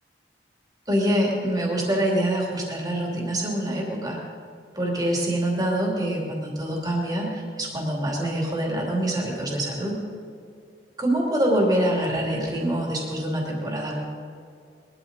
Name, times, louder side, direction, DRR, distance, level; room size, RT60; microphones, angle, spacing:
voice 1, 0.9-4.2 4.7-10.0 11.0-14.0, right 1 dB, 20° right, -2 dB, 2.8 m, -25 dB
21.5 x 12.5 x 4.1 m, 2.3 s
head